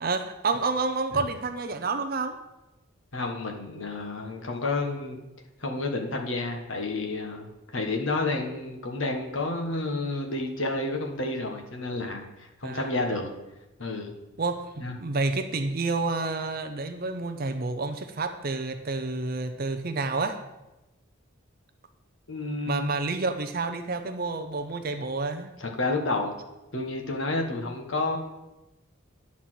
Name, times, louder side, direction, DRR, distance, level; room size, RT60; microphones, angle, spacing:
voice 1, 0.0-2.4 12.6-12.9 14.4-20.4 22.7-25.6, right 3 dB, 45° right, 7 dB, 0.5 m, -29 dB
voice 2, 3.1-5.2 5.6-13.3 13.8-14.1 14.8-14.9 22.3-22.9 25.6-26.3 26.7-28.2, left 2 dB, 65° left, 3 dB, 1.4 m, -30 dB
9.9 x 4.3 x 7.6 m, 1.0 s
head